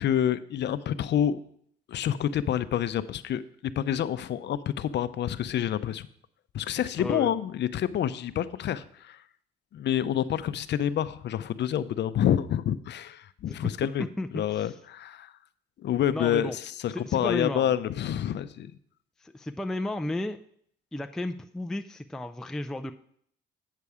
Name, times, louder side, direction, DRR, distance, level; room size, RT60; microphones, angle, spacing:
voice 1, 0.0-1.4 1.9-6.1 6.5-9.2 9.7-14.1 14.3-15.3 15.8-18.7, left 10 dB, 60° left, 14 dB, 0.6 m, -28 dB
voice 2, 7.0-7.3 13.5-13.7 14.0-14.8 16.1-16.6 16.9-17.7 19.2-20.4 20.9-22.9, left 1 dB, 5° left, 8 dB, 0.4 m, -33 dB
8.3 x 6.8 x 4.8 m, 0.64 s
cardioid pair, 90°, 20 cm